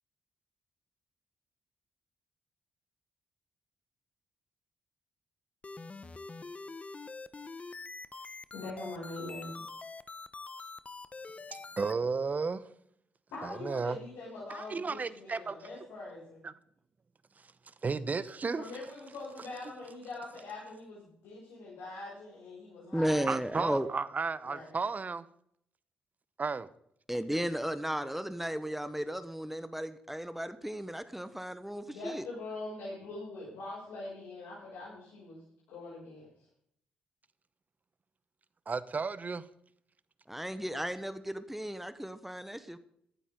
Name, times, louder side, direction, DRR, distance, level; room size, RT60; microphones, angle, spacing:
sound 1, 5.6-11.9, left 3 dB, 30° left, 1.0 m, -45 dB
voice 1, 8.5-9.5 13.3-16.4 18.5-23.4 24.4-24.7 31.8-35.4 35.7-36.3, left 2 dB, 80° left, 6.4 m, -43 dB
voice 2, 11.8-12.6 13.4-14.0 14.5-15.6 16.4-16.5 17.8-18.7 23.3-25.2 26.4-26.7 38.7-39.4, right 4 dB, 40° right, 0.9 m, -33 dB
voice 3, 22.9-23.9 27.1-32.2 40.3-42.8, equal, 5° right, 1.1 m, -34 dB
16.5 x 12.5 x 3.9 m
hypercardioid pair, 45°, 4 cm